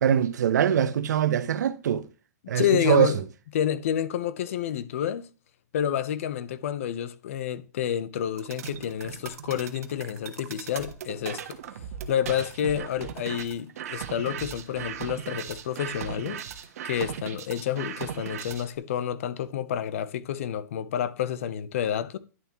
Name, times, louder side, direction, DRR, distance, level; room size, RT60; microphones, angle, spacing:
voice 1, 0.0-2.0 2.5-3.1, right 9 dB, 85° right, 0.9 m, -23 dB
voice 2, 2.5-3.2 3.5-5.3 5.7-11.6 12.1-16.4 16.8-22.2, left 9 dB, 50° left, 0.8 m, -29 dB
sound 1, 8.4-18.7, right 9 dB, 60° right, 1.3 m, -38 dB
11.0 x 7.0 x 3.0 m
supercardioid pair, 175°, 9 cm